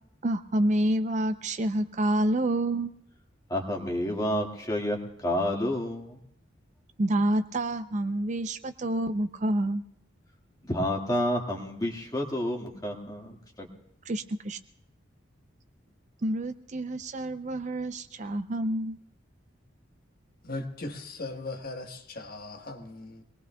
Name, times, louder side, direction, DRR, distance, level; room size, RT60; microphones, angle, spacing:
voice 1, 0.2-2.9 7.0-9.8 14.1-14.6 16.2-19.0, right 1 dB, 35° right, 0.5 m, -28 dB
voice 2, 3.5-6.2 10.6-13.7, left 1 dB, 20° left, 1.8 m, -30 dB
voice 3, 20.4-23.2, left 2 dB, 50° left, 1.3 m, -38 dB
25.5 x 19.5 x 2.3 m
head